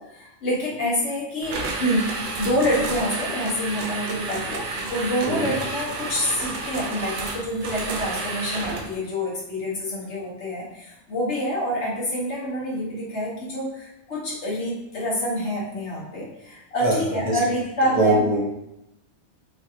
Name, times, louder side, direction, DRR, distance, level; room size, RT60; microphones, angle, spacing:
voice 1, 0.0-2.1 2.4-18.2, equal, 75° left, -6 dB, 1.4 m, -27 dB
sound 1, 1.4-9.0, right 3 dB, 60° right, 0.6 m, -31 dB
voice 2, 18.0-18.4, right 2 dB, 15° right, -3 dB, 0.5 m, -21 dB
3.2 x 2.5 x 2.7 m, 0.86 s
omnidirectional pair, 1.2 m